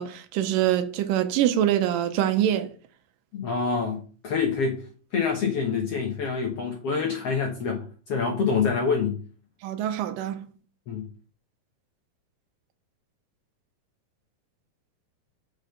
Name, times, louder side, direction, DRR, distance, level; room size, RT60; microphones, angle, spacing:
voice 1, 0.0-2.7 9.6-10.5, right 11 dB, 80° right, 2.2 m, -24 dB
voice 2, 3.3-4.9 5.1-9.2 10.9-11.1, left 5 dB, 70° left, 1.4 m, -26 dB
6.2 x 5.1 x 6.6 m
omnidirectional pair, 4.3 m